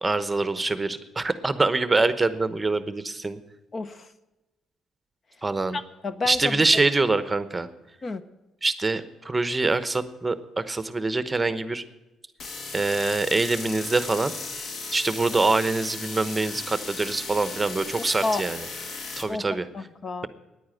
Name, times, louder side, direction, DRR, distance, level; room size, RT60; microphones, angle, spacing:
voice 1, 0.0-3.4 5.4-5.8 6.3-7.7 8.6-11.8 12.7-14.3 14.9-18.7 19.2-19.6, right 3 dB, 20° right, 12 dB, 1.0 m, -24 dB
voice 2, 3.7-4.1 5.7-6.6 8.0-8.2 18.2-18.4 19.3-19.4 19.7-20.3, left 3 dB, 40° left, 13 dB, 0.7 m, -30 dB
sound 1, 12.4-19.2, left 3 dB, 60° left, 1.6 m, -36 dB
10.0 x 9.4 x 9.1 m, 1.1 s
cardioid pair, 90°, 0 cm